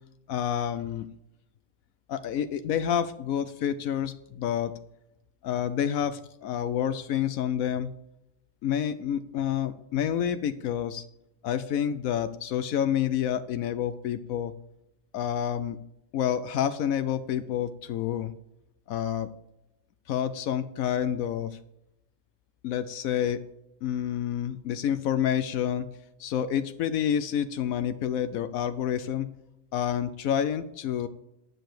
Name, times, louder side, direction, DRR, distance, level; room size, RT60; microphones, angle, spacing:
voice 1, 0.3-1.1 2.1-4.7 5.4-7.9 8.6-11.0 11.4-14.5 15.1-15.8 16.1-18.3 18.9-19.3 20.1-21.6 22.6-23.4 23.8-25.9 26.2-29.3 29.7-31.1, left 9 dB, 80° left, 12 dB, 1.1 m, -28 dB
10.5 x 6.7 x 7.7 m, 0.85 s
omnidirectional pair, 1.5 m